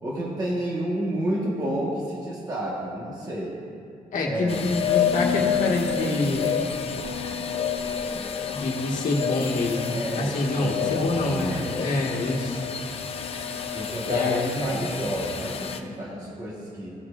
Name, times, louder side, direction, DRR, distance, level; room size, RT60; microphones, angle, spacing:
voice 1, 0.0-3.5 4.2-4.7 9.9-11.8 13.7-16.9, right 1 dB, 25° right, -5 dB, 1.3 m, -30 dB
voice 2, 4.1-6.5 8.5-9.8 10.1-12.6 14.1-14.8, left 2 dB, 60° left, -2 dB, 1.5 m, -26 dB
sound 1, 4.5-15.8, left 7 dB, 40° left, 0.6 m, -29 dB
18.0 x 7.2 x 2.5 m, 2.5 s
cardioid pair, 150°, 15 cm